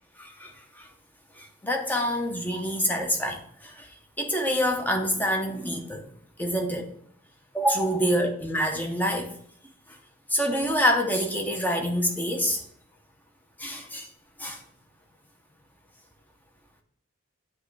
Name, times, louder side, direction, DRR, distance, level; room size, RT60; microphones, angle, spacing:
voice 1, 0.2-0.9 1.4-6.1 6.4-6.9 7.5-9.3 10.3-12.6 13.6-14.1 14.4-14.6, equal, 10° left, 3 dB, 0.7 m, -27 dB
8.2 x 3.0 x 4.8 m, 0.63 s
head